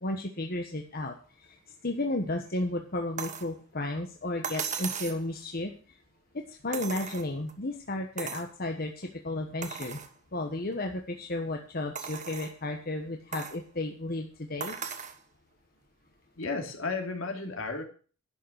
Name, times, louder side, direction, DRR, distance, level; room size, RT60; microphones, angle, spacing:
voice 1, 0.0-1.5 1.8-6.0 6.3-10.0 10.3-14.8, left 2 dB, 45° left, 3 dB, 1.3 m, -33 dB
sound 1, 3.2-3.5 4.4-5.2 6.7-7.5 8.2-8.5 9.0-9.1 9.6-10.1 10.7-10.8 12.0-12.6 13.3-13.6 14.6-15.2 16.4-16.5, right 6 dB, 35° right, 1.3 m, -37 dB
voice 2, 16.4-17.8, left 3 dB, 70° left, 3 dB, 2.9 m, -33 dB
11.5 x 6.7 x 8.0 m, 0.39 s
head